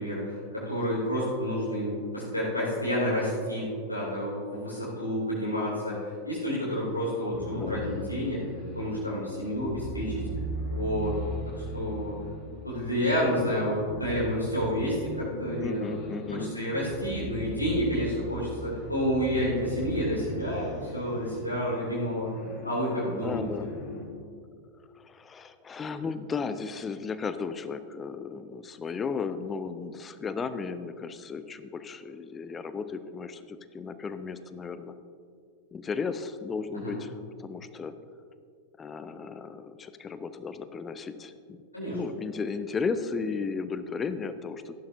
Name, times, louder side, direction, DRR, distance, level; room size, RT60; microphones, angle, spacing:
voice 1, 0.0-8.4 8.7-10.3 10.7-11.1 11.5-12.1 12.6-15.9 16.3-22.3 22.6-23.7 36.8-37.0 41.7-42.0, equal, 85° left, -7 dB, 2.6 m, -29 dB
voice 2, 7.2-7.8 15.6-16.5 23.0-23.7 25.0-34.9 35.7-37.9 38.8-41.6 41.9-44.7, left 5 dB, 20° left, 11 dB, 0.5 m, -35 dB
sound 1, 7.3-24.0, right 1 dB, 40° left, 2.5 m, -39 dB
14.5 x 11.0 x 2.6 m, 2.3 s
figure-of-eight pair, 90°, 0 cm